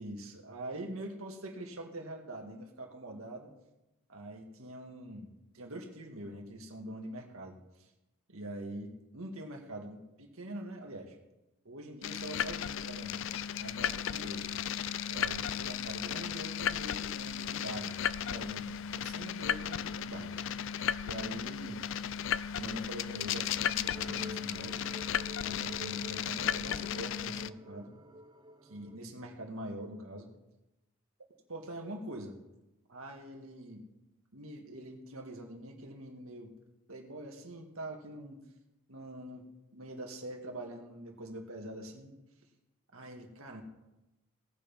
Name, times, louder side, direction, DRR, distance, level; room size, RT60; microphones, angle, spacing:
voice 1, 0.0-3.5 4.1-7.9 8.3-11.2 11.6-13.2 13.6-14.5 15.1-20.6 21.0-21.8 22.6-24.8 25.4-27.9 28.6-30.3 31.5-32.3 32.9-33.8 34.3-36.5 36.9-38.4 38.9-42.2 42.9-43.6, right 1 dB, 75° right, 2 dB, 2.1 m, -44 dB
sound 1, 12.0-27.5, left 9 dB, 60° left, 0.4 m, -35 dB
sound 2, 23.9-29.0, right 1 dB, 20° right, 0.5 m, -49 dB
17.5 x 7.0 x 5.4 m, 0.96 s
head